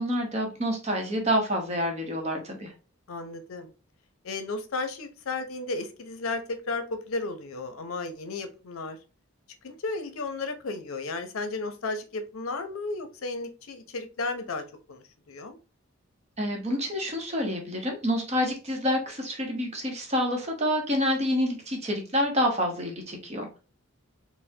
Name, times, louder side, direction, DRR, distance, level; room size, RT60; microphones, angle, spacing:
voice 1, 0.0-2.7 16.4-23.6, equal, 30° right, 2 dB, 0.8 m, -28 dB
voice 2, 3.1-3.7 4.2-9.0 9.6-15.6, left 3 dB, 80° left, 8 dB, 0.6 m, -34 dB
4.2 x 2.0 x 2.7 m, 0.34 s
head